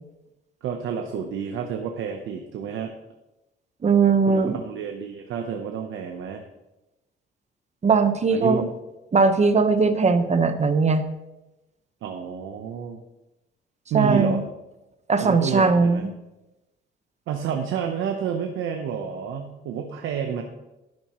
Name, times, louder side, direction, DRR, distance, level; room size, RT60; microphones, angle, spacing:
voice 1, 0.6-2.9 4.3-6.4 8.3-8.7 12.0-13.0 13.9-14.4 15.2-16.0 17.3-20.4, right 7 dB, 85° right, 4 dB, 1.0 m, -29 dB
voice 2, 3.8-4.6 7.8-8.6 9.1-11.0 13.9-14.4 15.1-16.1, right 4 dB, 35° right, 9 dB, 1.1 m, -19 dB
12.0 x 10.5 x 3.1 m, 0.97 s
cardioid pair, 90°, 20 cm